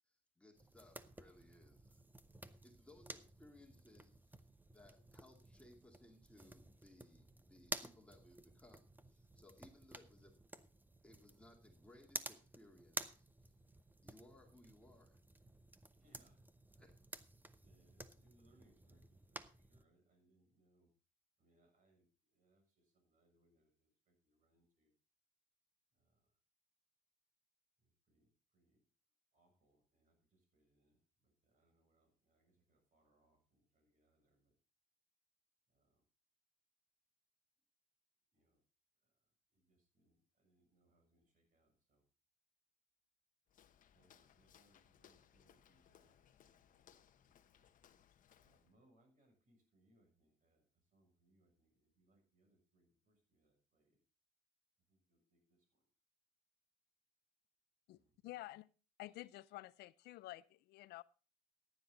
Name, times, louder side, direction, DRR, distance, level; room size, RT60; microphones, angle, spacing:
voice 1, 0.1-2.0 2.5-10.4 11.0-13.3 14.0-15.2 16.8-17.0, left 1 dB, 5° left, 2.3 m, -64 dB
sound 1, 0.6-19.8, right 2 dB, 10° right, 0.8 m, -53 dB
voice 2, 15.9-16.4 17.6-20.9 21.4-24.9 25.9-26.3 27.8-28.8 29.3-34.6 35.7-36.0 38.3-38.6 39.0-39.1 39.5-42.0 43.9-47.7 48.4-50.6 50.9-54.0 54.9-55.8 57.9-58.2, right 1 dB, 50° right, 7.1 m, -76 dB
Walk footsteps, 43.5-48.8, left 9 dB, 50° left, 1.1 m, -68 dB
voice 3, 57.9-58.7 59.0-61.0, left 17 dB, 75° left, 0.5 m, -51 dB
14.5 x 9.7 x 4.0 m
cardioid pair, 110°, 17 cm